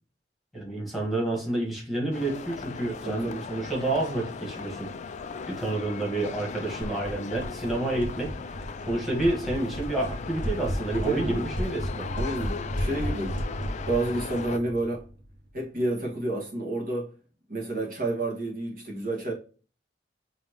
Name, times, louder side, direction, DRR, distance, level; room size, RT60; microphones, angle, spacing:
voice 1, 0.5-4.9 5.5-12.1, right 2 dB, ahead, 1.7 m, -29 dB
sound 1, 2.1-14.6, left 5 dB, 40° left, 0.3 m, -38 dB
voice 2, 3.0-3.4 11.0-11.4 12.1-13.4 13.9-15.1 15.5-17.1 17.5-19.3, right 2 dB, 50° right, 1.7 m, -30 dB
sound 2, 6.8-15.5, equal, 85° right, 1.5 m, -34 dB
5.7 x 3.0 x 3.0 m
head